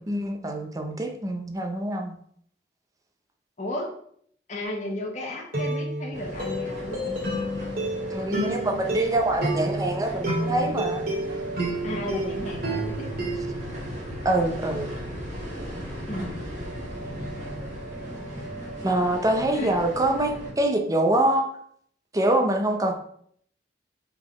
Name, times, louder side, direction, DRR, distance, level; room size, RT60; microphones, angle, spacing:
voice 1, 0.1-2.1 8.1-11.0 14.2-14.9 18.8-21.5 22.1-22.9, right 1 dB, 20° right, 4 dB, 0.6 m, -25 dB
voice 2, 4.5-7.1 11.8-13.3 16.1-16.7 19.5-19.9, left 1 dB, 40° left, -1 dB, 1.0 m, -34 dB
sound 1, 4.6-4.9 5.5-13.5, right 1 dB, 55° right, 2.4 m, -30 dB
sound 2, 6.1-20.5, right 1 dB, 40° right, 2.3 m, -36 dB
5.8 x 3.9 x 4.8 m, 0.64 s
head